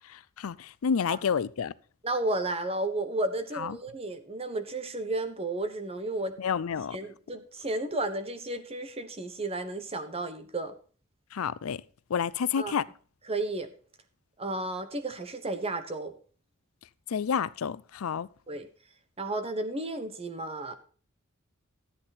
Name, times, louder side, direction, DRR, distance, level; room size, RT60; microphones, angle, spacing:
voice 1, 0.1-1.7 3.6-3.7 6.4-7.0 11.3-11.8 12.1-12.9 17.1-18.3, left 7 dB, 85° left, 0.5 m, -29 dB
voice 2, 2.0-6.4 6.9-10.8 12.6-12.7 13.3-13.7 14.4-16.1 18.5-18.7 19.2-20.8, right 2 dB, 30° right, 1.2 m, -33 dB
13.0 x 8.5 x 4.2 m
head